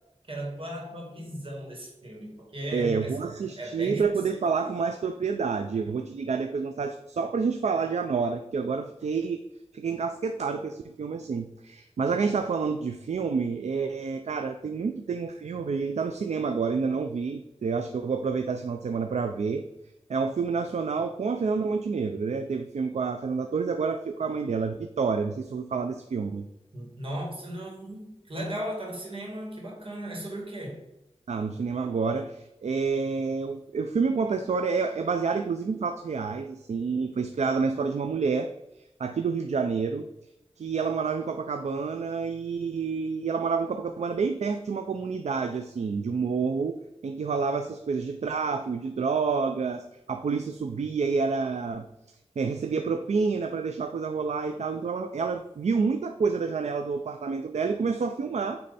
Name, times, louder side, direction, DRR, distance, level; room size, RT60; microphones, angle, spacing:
voice 1, 0.3-3.2 3.4-4.5 26.7-30.8, right 1 dB, 50° right, 2.1 m, -36 dB
voice 2, 2.7-9.4 9.7-19.6 20.1-26.5 31.3-38.5 39.0-40.1 40.6-46.8 47.0-51.9 52.4-58.6, right 5 dB, 85° right, 0.4 m, -28 dB
8.6 x 3.3 x 4.1 m
wide cardioid pair, 80°, 11 cm